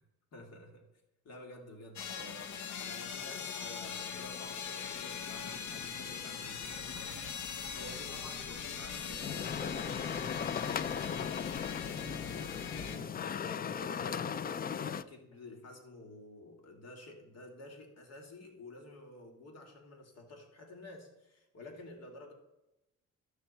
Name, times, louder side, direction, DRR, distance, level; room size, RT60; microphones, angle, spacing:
voice 1, 0.3-0.9 1.2-22.3, left 1 dB, 55° left, 1 dB, 2.7 m, -51 dB
sound 1, 2.0-13.0, left 6 dB, 70° left, 1.1 m, -41 dB
sound 2, 9.2-15.0, left 7 dB, 30° left, 0.4 m, -37 dB
13.0 x 6.7 x 4.3 m, 0.92 s
cardioid pair, 90°, 30 cm